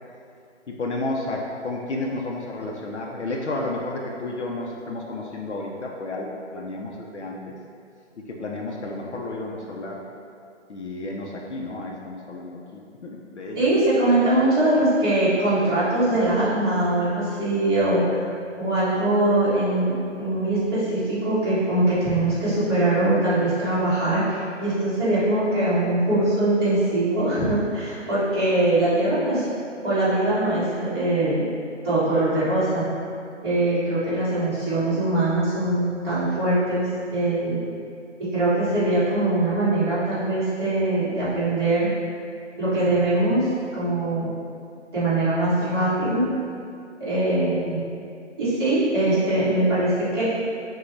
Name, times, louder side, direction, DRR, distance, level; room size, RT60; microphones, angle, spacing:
voice 1, 0.7-7.6 8.3-10.1 10.7-13.7, left 2 dB, 65° left, -1 dB, 0.6 m, -32 dB
voice 2, 13.5-18.3 18.6-29.4 29.8-31.5 31.8-32.9 33.4-37.6 38.2-41.9 42.6-44.3 44.9-46.3 47.0-47.8 48.4-50.2, right 1 dB, 20° right, -13 dB, 1.4 m, -22 dB
6.2 x 2.3 x 3.2 m, 2.5 s
hypercardioid pair, 165°, 37 cm